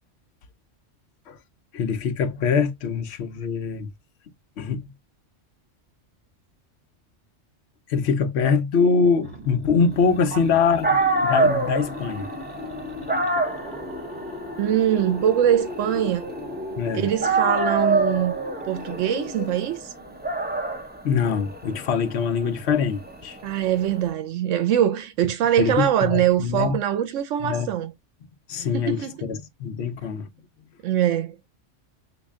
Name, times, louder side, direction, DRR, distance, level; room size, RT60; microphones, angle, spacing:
voice 1, 1.7-3.9 4.6-4.9 7.9-12.3 16.8-17.1 21.0-23.4 25.6-26.8 27.4-27.7 28.5-30.3, left 5 dB, 65° left, 0.8 m, -23 dB
sound 1, 9.0-20.2, left 2 dB, 5° left, 2.2 m, -38 dB
Dog, 10.5-10.6 10.8-16.8 17.2-24.0, right 3 dB, 10° right, 0.5 m, -26 dB
voice 2, 14.6-16.2 16.9-18.3 18.6-19.9 23.4-27.9 28.7-29.1 30.8-31.4, right 10 dB, 85° right, 0.9 m, -23 dB
3.1 x 2.6 x 3.5 m
omnidirectional pair, 1.3 m